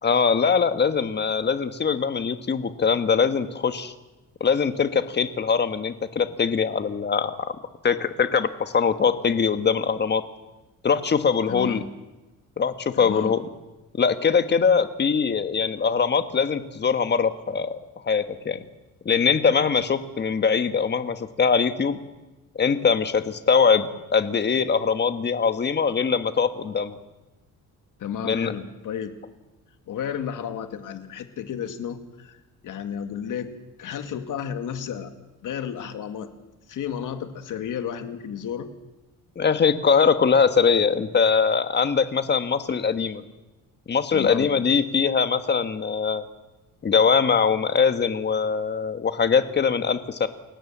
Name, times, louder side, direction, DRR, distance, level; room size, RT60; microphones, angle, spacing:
voice 1, 0.0-3.9 4.4-7.5 7.8-10.2 10.8-11.8 12.6-13.4 13.9-17.8 18.0-18.6 19.0-22.0 22.5-27.0 28.2-28.5 39.3-43.2 43.9-46.2 46.8-50.3, left 6 dB, 30° left, 9 dB, 1.5 m, -22 dB
voice 2, 11.5-11.9 12.9-13.4 28.0-29.1 29.9-33.5 33.8-35.1 35.4-36.3 36.7-38.7 44.1-44.5, left 8 dB, 65° left, 7 dB, 2.2 m, -32 dB
29.0 x 17.0 x 7.4 m, 1.1 s
cardioid pair, 140°, 34 cm